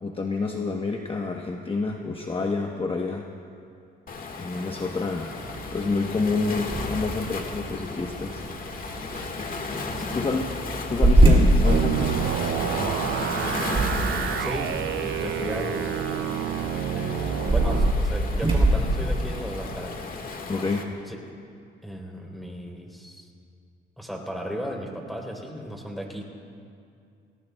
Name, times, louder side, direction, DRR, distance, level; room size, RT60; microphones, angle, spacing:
voice 1, 0.0-3.3 4.4-5.4 5.7-8.4 9.0-9.3 10.1-10.5 10.9-12.1 12.4-13.0 20.5-20.9, left 3 dB, 25° left, 1 dB, 1.0 m, -28 dB
Waves surf, 4.1-20.8, left 3 dB, 45° left, 1.7 m, -35 dB
sound 1, 5.3-20.0, right 1 dB, 30° right, 4.8 m, -26 dB
voice 2, 10.0-10.3 13.6-15.9 16.9-19.9 21.1-21.2 21.8-23.3 24.0-26.3, equal, ahead, -1 dB, 3.6 m, -35 dB
sound 2, 11.6-17.9, right 12 dB, 70° right, 0.5 m, -29 dB
28.0 x 19.0 x 2.3 m, 2.5 s
cardioid pair, 90°, 20 cm